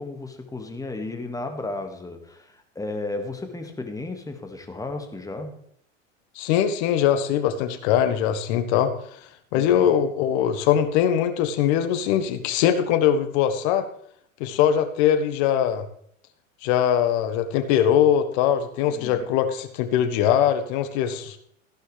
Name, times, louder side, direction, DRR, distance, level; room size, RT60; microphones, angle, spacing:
voice 1, 0.0-5.6 9.5-9.9 18.9-19.3, left 2 dB, 10° left, 5 dB, 2.0 m, -34 dB
voice 2, 6.3-8.9 9.5-13.8 14.4-15.8 16.6-21.4, left 9 dB, 55° left, 8 dB, 1.5 m, -21 dB
14.5 x 11.5 x 3.4 m, 0.67 s
hypercardioid pair, 85°, 39 cm